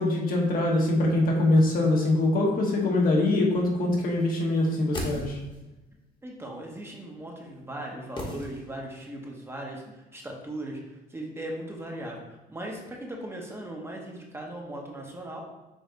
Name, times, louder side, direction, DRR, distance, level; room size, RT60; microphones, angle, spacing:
voice 1, 0.0-5.4, left 2 dB, 55° left, -1 dB, 1.1 m, -23 dB
sound 1, 4.6-5.8 8.2-9.1 9.3-9.4, left 1 dB, 30° left, 1.0 m, -37 dB
voice 2, 6.2-12.2 12.5-15.4, right 1 dB, 15° right, -1 dB, 0.8 m, -38 dB
5.3 x 2.6 x 3.8 m, 1.0 s
cardioid pair, 110°, 17 cm